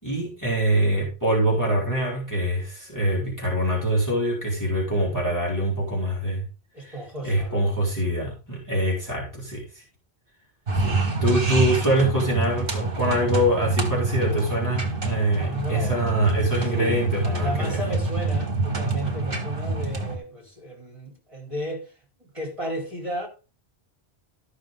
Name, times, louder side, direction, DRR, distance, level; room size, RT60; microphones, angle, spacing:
voice 1, 0.0-6.5 6.8-7.0 7.2-9.8 10.8-11.0 11.2-17.8, right 1 dB, 15° left, 3.5 m, -24 dB
voice 2, 6.7-7.6 8.7-9.0 15.3-16.0 16.7-21.9 22.2-23.3, right 1 dB, 30° right, 4.2 m, -34 dB
sound 1, 10.7-20.2, right 3 dB, 60° right, 1.9 m, -26 dB
13.0 x 6.4 x 3.8 m
omnidirectional pair, 1.1 m